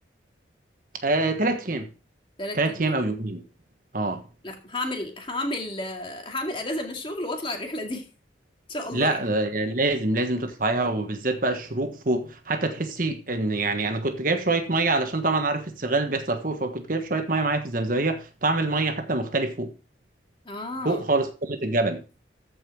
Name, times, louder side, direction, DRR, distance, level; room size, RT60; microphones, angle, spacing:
voice 1, 1.0-1.9 2.5-3.4 3.9-4.2 8.9-19.7 20.8-22.0, right 2 dB, 45° right, 1.4 m, -25 dB
voice 2, 2.4-3.0 4.4-8.1 8.7-9.2 20.5-21.0, left 1 dB, 25° left, 2.2 m, -32 dB
14.5 x 5.4 x 4.8 m
head